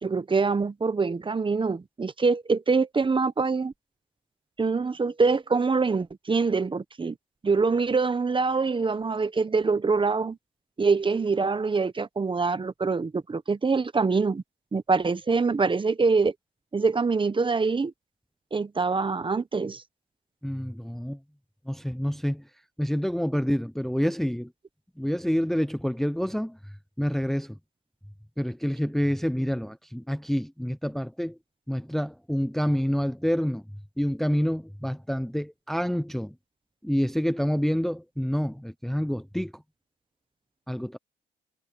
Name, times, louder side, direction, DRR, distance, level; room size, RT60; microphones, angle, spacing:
voice 1, 0.0-3.7 4.6-7.2 7.4-10.4 10.8-14.4 14.7-16.3 16.7-17.9 18.5-19.8, right 4 dB, 25° right, 1.0 m, -24 dB
voice 2, 20.4-21.2 21.7-22.4 22.8-24.5 25.0-27.6 28.4-31.4 31.7-33.6 34.0-36.3 36.8-39.6 40.7-41.0, equal, ahead, 0.8 m, -28 dB
cardioid pair, 90°, 20 cm